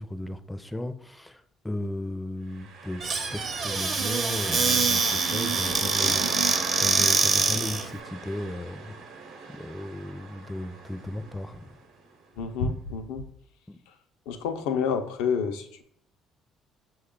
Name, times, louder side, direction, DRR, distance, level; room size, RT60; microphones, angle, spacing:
voice 1, 0.0-3.0 3.3-8.9 9.5-11.7 13.7-13.8, left 1 dB, 10° left, 10 dB, 0.4 m, -36 dB
sound 1, 2.5-12.3, right 4 dB, 75° right, 0.9 m, -40 dB
Squeak / Cupboard open or close, 3.0-7.9, right 4 dB, 45° right, 0.7 m, -24 dB
voice 2, 12.4-13.2 14.3-15.8, left 6 dB, 85° left, 7 dB, 0.5 m, -28 dB
6.0 x 2.3 x 3.6 m, 0.67 s
supercardioid pair, 80°, 0 cm